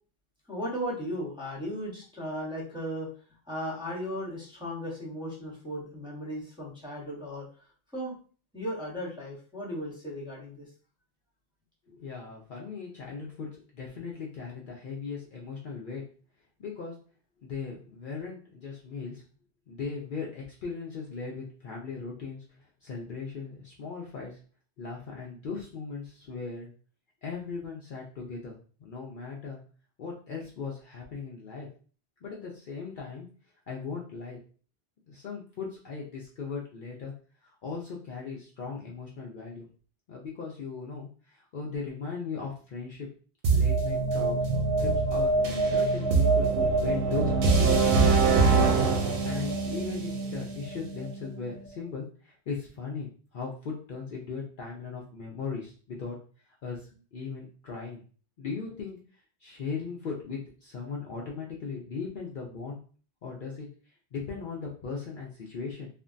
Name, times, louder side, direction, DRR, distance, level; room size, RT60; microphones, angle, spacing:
voice 1, 0.5-3.1 3.5-7.5 7.9-8.1 8.5-10.6, equal, 5° right, -7 dB, 1.0 m, -36 dB
voice 2, 11.9-16.0 16.6-16.9 17.4-19.2 19.7-24.4 24.8-26.7 27.2-28.5 28.8-29.6 30.0-31.7 32.2-33.3 33.7-34.4 35.1-37.1 37.4-39.7 40.1-43.1 43.5-44.4 44.8-48.4 49.2-56.2 56.6-58.0 58.4-59.0 59.4-62.8 63.2-63.7 64.1-65.9, left 5 dB, 60° left, -2 dB, 0.7 m, -38 dB
sound 1, 43.4-51.3, right 4 dB, 65° right, 0.7 m, -24 dB
3.3 x 2.2 x 2.5 m, 0.40 s
omnidirectional pair, 1.1 m